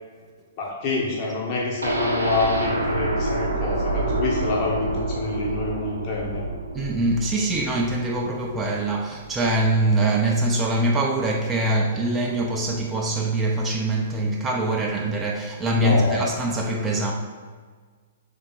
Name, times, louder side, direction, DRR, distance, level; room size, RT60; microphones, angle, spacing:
voice 1, 0.6-6.4 15.7-16.3, left 3 dB, 40° left, 0.8 m, -26 dB
sound 1, 1.8-9.7 10.0-10.1 10.5-10.6, right 2 dB, 90° right, 0.6 m, -28 dB
voice 2, 6.7-17.1, right 2 dB, 15° right, 0.4 m, -23 dB
3.8 x 3.4 x 3.7 m
figure-of-eight pair, 120°, 0 cm